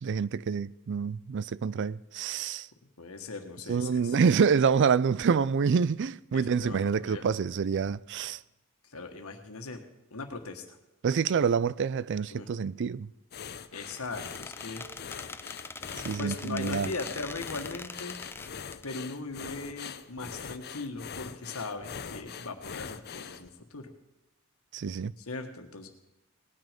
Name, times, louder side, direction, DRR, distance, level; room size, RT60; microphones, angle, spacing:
voice 1, 0.0-2.7 3.7-8.4 11.0-13.1 16.0-16.9 24.7-25.1, right 6 dB, 55° right, 0.4 m, -27 dB
voice 2, 2.8-4.2 6.3-7.3 8.8-9.8 10.1-10.8 12.3-12.5 13.7-14.8 16.1-18.2 18.8-23.9 25.2-25.9, left 3 dB, 85° left, 1.6 m, -39 dB
sound 1, 13.3-23.5, left 7 dB, 50° left, 0.6 m, -43 dB
Squeak, 13.7-18.9, left 3 dB, 10° left, 0.5 m, -43 dB
19.0 x 9.4 x 5.2 m
head